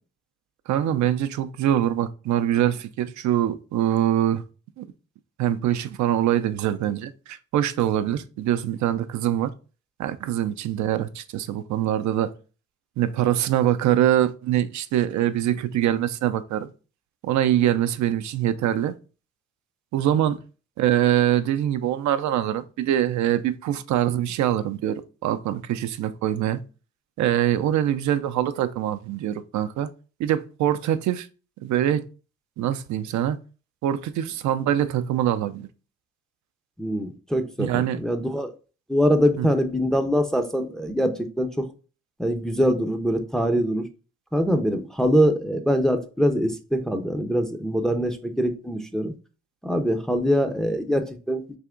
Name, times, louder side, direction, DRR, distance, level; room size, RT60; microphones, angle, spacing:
voice 1, 0.7-4.4 4.8-4.9 5.4-9.5 10.0-12.3 13.0-16.7 17.2-18.9 19.9-20.4 20.8-26.6 27.2-29.9 30.2-31.3 31.6-32.0 32.6-33.4 33.8-35.7 37.6-38.0 39.4-39.5, right 11 dB, 70° right, 0.4 m, -24 dB
voice 2, 36.8-38.5 38.9-41.7 42.2-43.8 44.3-49.1 49.6-51.4, equal, ahead, 0.5 m, -23 dB
3.5 x 2.9 x 3.6 m
cardioid pair, 90°, 30 cm